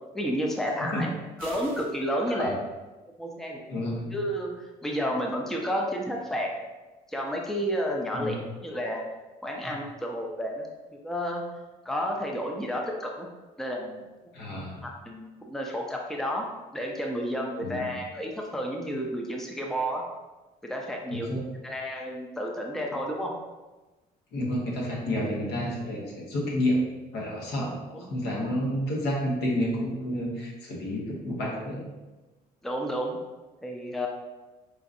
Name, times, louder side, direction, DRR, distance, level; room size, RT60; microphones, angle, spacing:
voice 1, 0.1-1.1 1.4-2.6 3.2-3.6 4.1-6.5 7.1-8.4 8.6-9.0 9.4-10.7 11.0-11.4 11.8-13.3 13.6-14.1 14.8-16.5 16.7-20.0 20.7-21.3 21.6-23.3 27.9-28.1 32.6-33.2 33.6-34.1, equal, ahead, 0 dB, 0.5 m, -31 dB
sound 1, 1.4-2.0, right 3 dB, 55° right, 0.8 m, -44 dB
voice 2, 3.7-4.1 8.1-8.4 9.6-9.7 14.3-14.9 17.6-17.9 21.1-21.4 24.3-27.8 28.1-31.9, equal, 80° left, -3 dB, 1.1 m, -30 dB
4.8 x 2.5 x 2.6 m, 1.2 s
cardioid pair, 110°, 17 cm